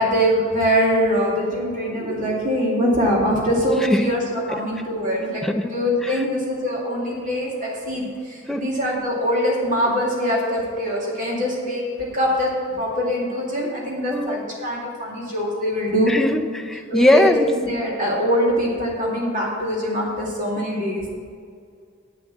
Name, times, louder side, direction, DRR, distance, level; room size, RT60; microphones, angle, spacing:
voice 1, 0.0-16.1 16.9-21.0, equal, 40° right, -4 dB, 2.4 m, -23 dB
voice 2, 16.1-17.5, left 1 dB, ahead, 3 dB, 0.6 m, -19 dB
8.6 x 7.6 x 7.4 m, 2.2 s
head